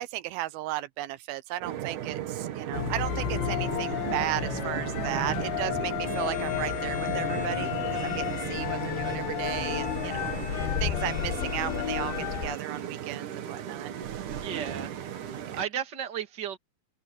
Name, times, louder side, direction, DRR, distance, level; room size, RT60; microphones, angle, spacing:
voice 1, 0.0-13.9 15.4-15.6, right 15 dB, 85° right, 2.6 m, -35 dB
sound 1, 1.6-15.6, right 10 dB, 60° right, 2.8 m, -36 dB
sound 2, 2.7-12.6, left 14 dB, 85° left, 2.9 m, -32 dB
sound 3, 6.0-12.9, left 4 dB, 40° left, 7.6 m, -45 dB
voice 2, 14.4-14.9 15.2-16.6, right 9 dB, 35° right, 2.3 m, -34 dB
omnidirectional pair, 4.3 m